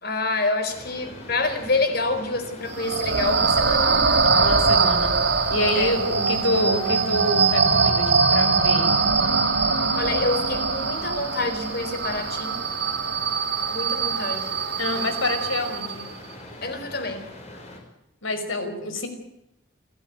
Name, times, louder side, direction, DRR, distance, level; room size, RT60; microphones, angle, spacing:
voice 1, 0.0-4.0 5.7-6.0 9.9-12.7 13.7-14.6 16.6-17.3, left 2 dB, 50° left, 8 dB, 4.4 m, -27 dB
sound 1, 0.7-17.8, left 1 dB, 30° left, 5.6 m, -42 dB
sound 2, 2.7-16.1, right 4 dB, 55° right, 3.3 m, -22 dB
voice 2, 4.3-5.1 5.5-8.9 14.8-16.1 18.2-19.1, left 1 dB, 80° left, 9 dB, 5.1 m, -27 dB
29.0 x 14.0 x 9.4 m, 0.86 s
head